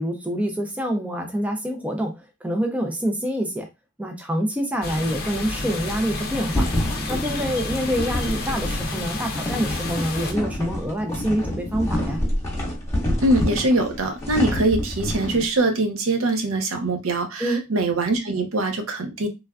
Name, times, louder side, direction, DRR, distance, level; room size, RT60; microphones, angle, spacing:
voice 1, 0.0-3.7 4.0-6.7 7.1-12.2 17.4-17.6, equal, 5° right, 3 dB, 0.4 m, -26 dB
sound 1, 4.8-10.3, left 2 dB, 45° left, 0.6 m, -30 dB
sound 2, 6.5-15.5, left 1 dB, 15° left, 1.2 m, -27 dB
voice 2, 13.2-19.3, right 2 dB, 75° right, 6 dB, 0.7 m, -23 dB
3.2 x 2.2 x 2.3 m, 0.23 s
head